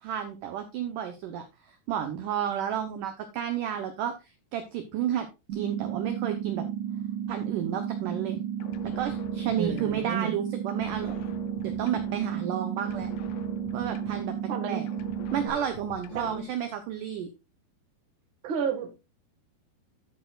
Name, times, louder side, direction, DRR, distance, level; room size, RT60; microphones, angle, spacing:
voice 1, 0.0-5.3 5.5-6.7 7.3-8.4 8.8-11.2 11.6-13.1 13.7-14.3 14.7-14.9 15.3-17.3, right 9 dB, 75° right, 2.0 m, -32 dB
sound 1, 5.5-15.5, right 9 dB, 90° right, 3.6 m, -33 dB
sound 2, 8.6-10.4 10.7-12.5 12.8-14.6 14.9-16.6, left 9 dB, 75° left, 2.4 m, -45 dB
voice 2, 9.6-10.4 14.5-14.8 16.1-16.4 18.4-18.9, right 6 dB, 45° right, 1.7 m, -31 dB
11.0 x 9.1 x 2.4 m
omnidirectional pair, 4.8 m